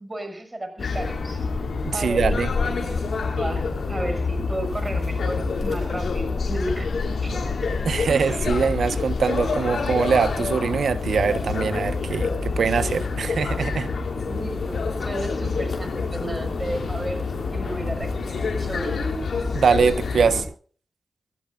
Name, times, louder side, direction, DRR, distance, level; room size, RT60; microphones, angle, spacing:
voice 1, 0.0-1.5 1.9-7.4 8.1-8.4 14.3-17.2 17.5-19.2, right 1 dB, 30° right, 6.6 m, -34 dB
sound 1, 0.8-20.4, left 4 dB, 75° left, 5.7 m, -27 dB
voice 2, 1.8-2.5 7.8-13.9 19.5-20.5, right 5 dB, 85° right, 1.2 m, -23 dB
23.5 x 17.0 x 2.6 m
cardioid pair, 45°, 0 cm